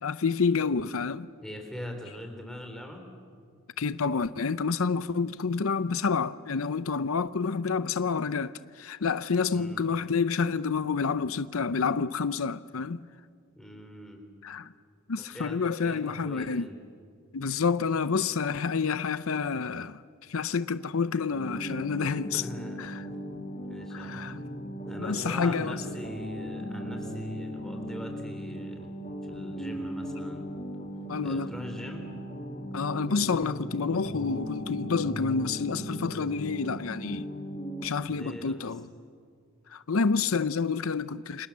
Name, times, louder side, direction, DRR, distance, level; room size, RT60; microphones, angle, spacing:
voice 1, 0.0-1.3 3.8-13.0 14.4-14.7 15.1-16.7 17.3-22.4 22.8-23.1 23.9-24.4 25.0-25.8 31.1-31.5 32.7-37.3 37.8-38.9 39.7-41.5, left 5 dB, 75° left, 0.6 m, -29 dB
voice 2, 1.4-3.1 9.5-9.8 13.5-14.2 15.2-16.7 22.3-22.8 23.1-24.3 24.8-29.0 29.2-30.5 31.2-32.1 38.1-38.7, left 1 dB, 5° left, 3.8 m, -42 dB
sound 1, 21.3-37.9, equal, 35° left, 3.2 m, -37 dB
29.5 x 26.5 x 7.4 m
head